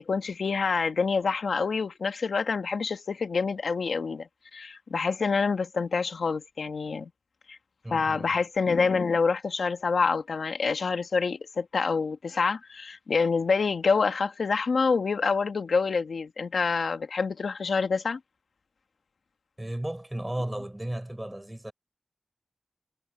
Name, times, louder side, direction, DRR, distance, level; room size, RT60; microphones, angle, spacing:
voice 1, 0.0-7.1 7.5-7.6 7.9-18.2, left 4 dB, 90° left, 1.6 m, -27 dB
voice 2, 7.8-8.4 19.6-21.7, right 1 dB, 15° right, 6.7 m, -34 dB
cardioid pair, 50°, 0 cm